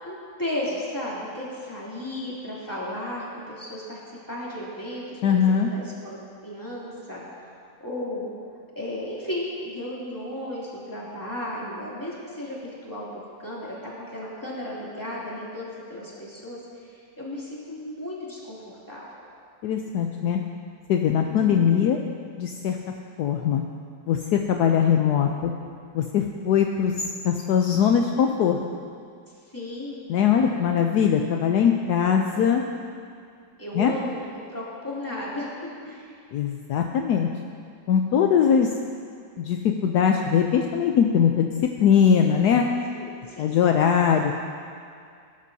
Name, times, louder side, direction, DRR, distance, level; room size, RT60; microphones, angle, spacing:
voice 1, 0.0-4.0 4.3-7.2 7.8-8.3 8.7-16.6 16.9-19.0 21.3-21.9 29.5-29.9 32.0-32.5 33.6-35.5 35.8-36.1 42.9-43.8, left 1 dB, 10° left, -7 dB, 2.8 m, -34 dB
voice 2, 5.2-5.7 19.6-20.4 20.9-22.0 22.4-22.8 23.2-23.6 24.1-25.5 25.9-26.9 27.2-28.6 30.1-32.6 33.8-33.9 36.3-37.3 37.9-38.7 39.4-41.5 41.8-42.7 43.4-44.3, left 8 dB, 70° left, 3 dB, 1.2 m, -21 dB
19.0 x 11.5 x 2.8 m, 2.2 s
omnidirectional pair, 1.8 m